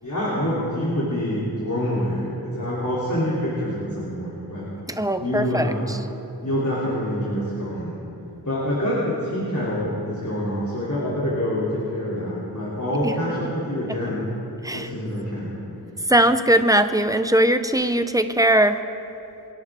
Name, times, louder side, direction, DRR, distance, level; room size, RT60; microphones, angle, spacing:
voice 1, 0.0-4.7 5.2-5.8 6.4-7.9 8.4-14.3 14.7-15.6, equal, 45° left, -7 dB, 3.4 m, -26 dB
voice 2, 4.9-6.0 13.0-13.1 13.9-14.0 14.6-14.9 16.1-18.8, right 1 dB, 10° right, 9 dB, 0.8 m, -20 dB
28.0 x 10.5 x 3.8 m, 2.9 s
wide cardioid pair, 40°, 40 cm